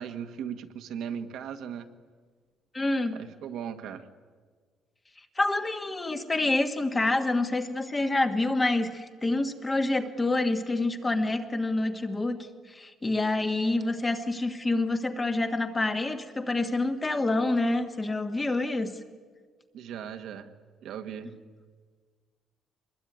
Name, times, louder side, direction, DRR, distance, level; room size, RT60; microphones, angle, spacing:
voice 1, 0.0-1.9 3.1-4.1 19.7-20.5 20.8-21.3, right 8 dB, 60° right, 7 dB, 1.5 m, -37 dB
voice 2, 2.7-3.2 5.2-18.9, left 2 dB, 15° left, 7 dB, 1.5 m, -27 dB
24.5 x 21.0 x 9.3 m, 1.5 s
cardioid pair, 175°, 0 cm